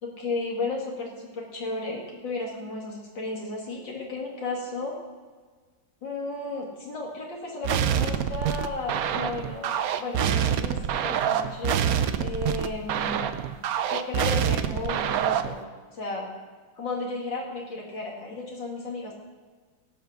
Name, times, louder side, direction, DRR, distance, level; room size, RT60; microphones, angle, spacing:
voice 1, 0.0-4.9 6.0-9.7 10.0-13.3 13.9-15.6 15.9-16.3 16.8-19.1, left 3 dB, 70° left, -2 dB, 2.8 m, -34 dB
sound 1, 7.6-15.6, right 9 dB, 65° right, 0.9 m, -26 dB
17.0 x 6.1 x 6.1 m, 1.5 s
omnidirectional pair, 2.1 m